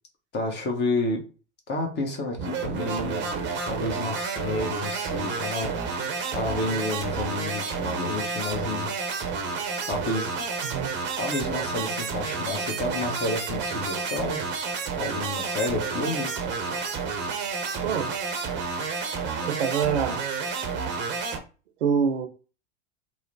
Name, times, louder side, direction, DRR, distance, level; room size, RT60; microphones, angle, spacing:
voice 1, 0.3-1.2 1.7-5.8 6.3-8.9 9.9-10.3 11.2-14.5 15.0-16.4, left 2 dB, 30° left, 0.9 m, -30 dB
sound 1, 2.4-21.4, right 5 dB, 30° right, 0.6 m, -30 dB
voice 2, 17.8-18.1 19.4-20.4 21.8-22.3, right 7 dB, 80° right, 0.6 m, -26 dB
2.9 x 2.0 x 2.6 m
hypercardioid pair, 85°, 35 cm